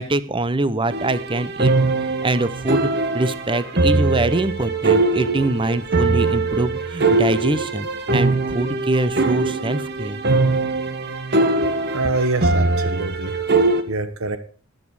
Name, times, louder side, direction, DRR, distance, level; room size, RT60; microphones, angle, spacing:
voice 1, 0.0-1.7 2.2-2.9 3.1-10.2, right 2 dB, 25° right, 15 dB, 0.8 m, -23 dB
sound 1, 0.9-13.8, right 3 dB, 50° right, 1.5 m, -21 dB
voice 2, 11.9-13.4 13.9-14.4, right 2 dB, 75° right, 11 dB, 1.1 m, -25 dB
14.0 x 10.5 x 4.9 m, 0.39 s
head